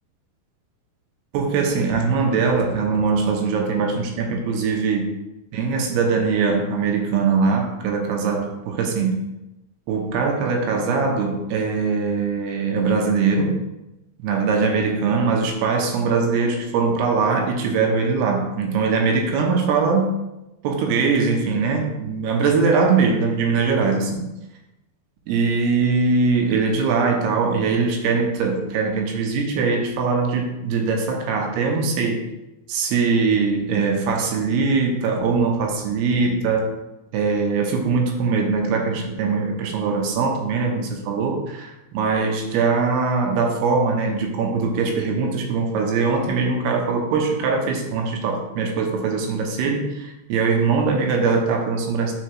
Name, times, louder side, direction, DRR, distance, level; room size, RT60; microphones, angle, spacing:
voice 1, 1.3-5.1 5.5-9.3 9.9-13.6 14.2-20.1 20.6-24.3 25.3-32.2 32.7-36.7 37.1-52.1, right 4 dB, 90° right, 2 dB, 3.0 m, -21 dB
9.6 x 4.6 x 3.1 m, 0.94 s
omnidirectional pair, 4.5 m